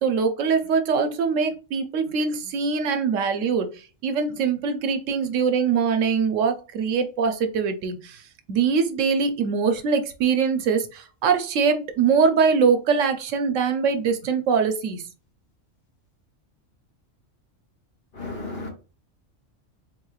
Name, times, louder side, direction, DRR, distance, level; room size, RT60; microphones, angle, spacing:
voice 1, 0.0-8.2 8.5-15.0, right 5 dB, 80° right, 1.0 m, -23 dB
voice 2, 18.1-18.7, left 3 dB, 55° left, 1.2 m, -33 dB
3.8 x 3.1 x 2.3 m
omnidirectional pair, 1.3 m